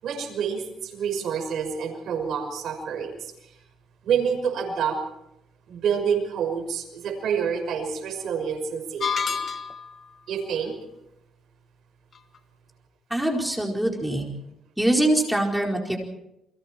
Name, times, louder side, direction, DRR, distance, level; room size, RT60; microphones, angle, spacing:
voice 1, 0.0-3.3 4.0-5.0 5.7-9.4 10.3-10.8, right 7 dB, 70° right, 2 dB, 5.9 m, -28 dB
sound 1, 9.0-10.0, left 6 dB, 40° left, 1.5 m, -28 dB
voice 2, 13.1-14.2 14.8-16.0, right 1 dB, 5° right, 0 dB, 4.6 m, -23 dB
29.5 x 23.0 x 4.5 m, 0.85 s
cardioid pair, 125°, 0 cm